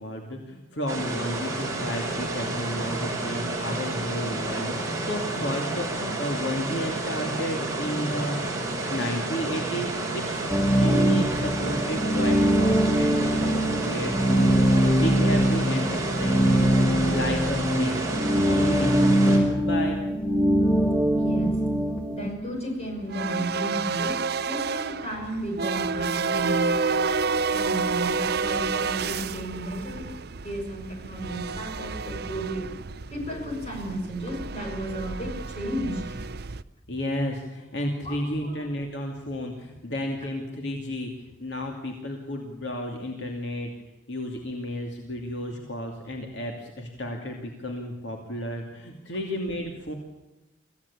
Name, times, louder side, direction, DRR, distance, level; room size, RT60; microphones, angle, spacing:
voice 1, 0.0-10.4 10.8-20.0 36.9-43.7 44.1-49.9, equal, 65° left, 2 dB, 2.7 m, -32 dB
sound 1, 0.9-19.4, right 2 dB, 15° right, 5.2 m, -30 dB
sound 2, 10.5-22.3, equal, 5° left, 1.6 m, -22 dB
voice 2, 21.2-21.6 22.1-24.2 24.5-26.8 27.5-32.7 33.1-36.2 38.0-38.7, right 1 dB, 35° left, 1 dB, 7.0 m, -33 dB
sound 3, 22.2-36.6, right 4 dB, 55° right, 0.7 m, -30 dB
25.5 x 16.0 x 8.6 m, 1.0 s
head